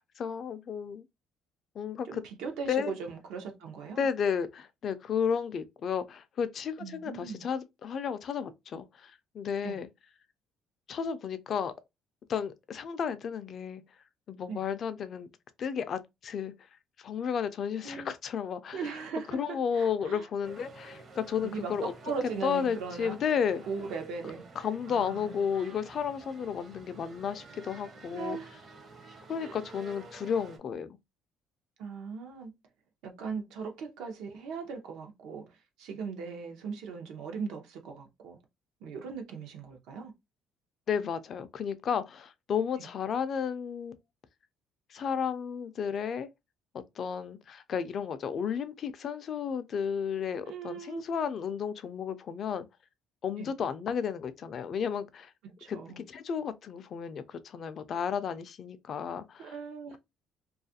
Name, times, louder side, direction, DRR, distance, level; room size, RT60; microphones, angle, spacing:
voice 1, 0.2-1.0 1.8-2.2 2.7-2.9 4.0-9.9 10.9-11.7 12.3-13.8 14.3-15.3 15.6-16.5 17.0-18.8 19.3-21.9 22.4-23.6 24.6-28.4 29.3-30.9 40.9-43.9 44.9-46.3 46.7-52.7 53.2-55.3 55.7-59.5, left 7 dB, 45° left, 0.3 m, -33 dB
voice 2, 2.0-4.0 6.8-7.5 9.6-9.8 14.5-14.6 17.8-18.1 18.7-20.2 21.4-23.1 23.7-24.4 24.9-25.4 28.1-28.5 29.4-29.6 31.8-32.5 33.0-38.4 38.8-40.1 50.4-51.0 53.4-53.5 55.4-56.0 59.4-60.0, right 5 dB, 80° right, 0.6 m, -39 dB
sound 1, 20.4-30.6, right 3 dB, 40° right, 0.6 m, -50 dB
2.4 x 2.3 x 2.6 m
cardioid pair, 135°, 0 cm